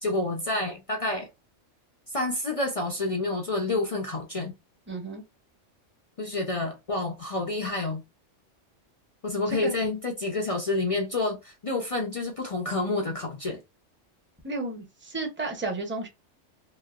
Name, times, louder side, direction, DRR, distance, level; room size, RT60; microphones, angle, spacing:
voice 1, 0.0-1.3 2.1-4.5 6.2-8.0 9.2-13.6, left 2 dB, 45° left, 0.4 m, -29 dB
voice 2, 4.9-5.2 9.5-9.8 14.4-16.1, right 3 dB, 10° right, 0.7 m, -32 dB
3.1 x 2.7 x 2.3 m
omnidirectional pair, 1.3 m